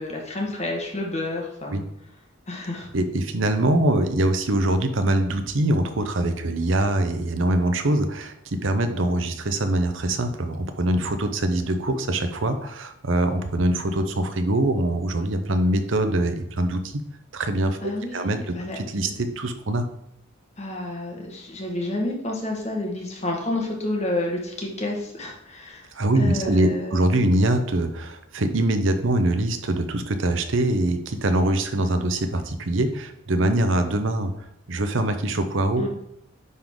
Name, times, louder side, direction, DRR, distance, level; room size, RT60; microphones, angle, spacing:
voice 1, 0.0-1.9 2.5-2.9 17.8-18.8 20.6-25.9 26.1-27.2 35.8-35.9, left 1 dB, 35° left, -1 dB, 1.4 m, -30 dB
voice 2, 2.9-17.0 17.3-19.9 25.9-34.3 34.7-35.9, right 1 dB, 65° right, 8 dB, 0.8 m, -23 dB
9.4 x 4.0 x 3.6 m, 0.78 s
head